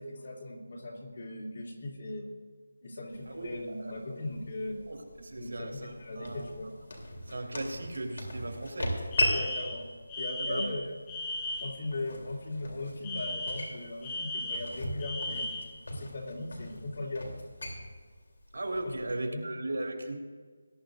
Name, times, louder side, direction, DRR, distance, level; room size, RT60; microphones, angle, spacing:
voice 1, 0.0-2.2 2.8-4.8 5.4-6.7 9.3-9.8 10.2-10.9 11.6-15.5 15.9-17.3 18.8-18.9 19.2-19.5, left 2 dB, 45° left, -2 dB, 2.7 m, -38 dB
sound 1, 3.1-19.2, left 1 dB, 70° left, 3.3 m, -39 dB
voice 2, 3.8-4.2 4.9-5.9 6.1-6.5 7.3-8.9 10.4-10.7 18.5-20.2, right 2 dB, 80° right, 1 dB, 3.1 m, -37 dB
Alarm, 9.1-11.8 13.0-15.8, left 2 dB, 10° left, 0.6 m, -37 dB
20.0 x 11.5 x 2.6 m, 1.5 s
figure-of-eight pair, 175°, 0 cm